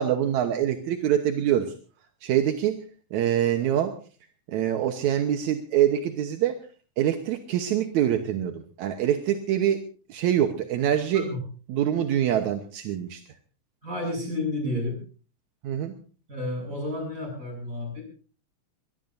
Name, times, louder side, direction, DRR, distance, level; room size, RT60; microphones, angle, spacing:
voice 1, 0.0-1.7 2.2-2.8 3.1-3.9 4.5-6.6 7.0-9.8 10.1-11.3 11.7-13.2 15.6-16.0, right 10 dB, 75° right, 6 dB, 2.4 m, -25 dB
voice 2, 13.8-15.0 16.3-18.0, left 2 dB, 25° right, 2 dB, 8.2 m, -31 dB
22.5 x 21.5 x 2.7 m, 0.38 s
omnidirectional pair, 3.5 m